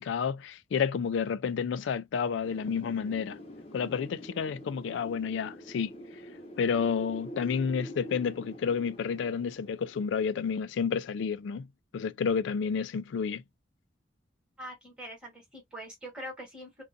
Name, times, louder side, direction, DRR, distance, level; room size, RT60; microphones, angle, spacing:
voice 1, 0.0-3.4 3.7-5.9 6.6-11.7 11.9-13.4, left 6 dB, 75° left, 0.3 m, -30 dB
Wind, 2.4-11.1, equal, 30° left, 0.8 m, -46 dB
voice 2, 14.6-16.8, equal, 5° right, 1.2 m, -43 dB
2.4 x 2.3 x 2.5 m
head